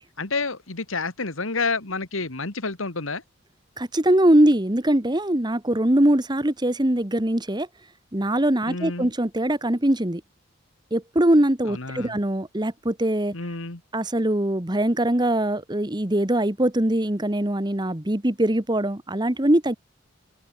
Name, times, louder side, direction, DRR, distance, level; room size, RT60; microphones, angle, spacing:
voice 1, 0.2-3.2 8.7-9.1 11.7-12.2 13.3-13.8, left 3 dB, 75° left, 2.3 m, -29 dB
voice 2, 3.8-7.7 8.1-10.2 10.9-13.3 13.9-19.7, right 1 dB, 20° right, 1.4 m, -22 dB
open air
head